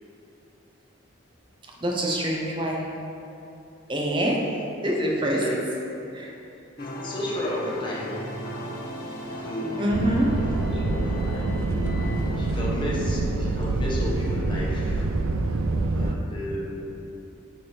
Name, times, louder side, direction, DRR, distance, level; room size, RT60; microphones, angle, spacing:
voice 1, 1.8-2.8 3.9-4.6 4.8-5.4 6.1-6.3 9.8-10.3, equal, 25° right, -1 dB, 0.7 m, -25 dB
voice 2, 5.2-5.6 6.8-8.2 9.4-9.9 10.4-12.0 12.4-15.1 15.9-17.0, left 1 dB, 25° left, -5 dB, 1.0 m, -33 dB
sound 1, 6.8-12.5, equal, 45° left, 0.7 m, -37 dB
sound 2, 9.9-16.2, right 2 dB, 75° right, 0.4 m, -26 dB
8.4 x 3.4 x 4.3 m, 2.9 s
head